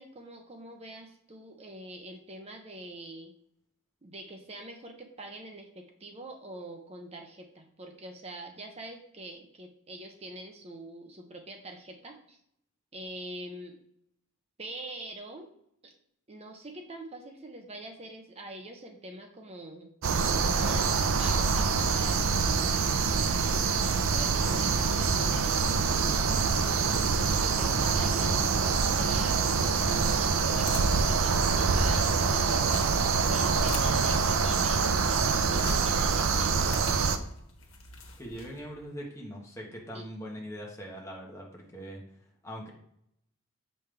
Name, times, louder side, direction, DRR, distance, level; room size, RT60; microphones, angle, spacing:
voice 1, 0.0-3.3 4.0-12.4 12.9-13.8 14.6-15.5 15.8-15.9 16.3-19.9 20.6-22.2 23.2-26.4 26.8-29.5 30.0-32.7 33.3-36.7 39.9-40.0, right 1 dB, 30° right, 3 dB, 0.8 m, -44 dB
sound 1, 20.0-37.2, right 5 dB, 75° right, 0.5 m, -25 dB
sound 2, 28.0-38.9, left 3 dB, 70° left, 1.4 m, -47 dB
voice 2, 38.2-42.0 42.4-42.7, equal, 15° left, -2 dB, 1.4 m, -41 dB
7.1 x 5.3 x 3.4 m, 0.73 s
head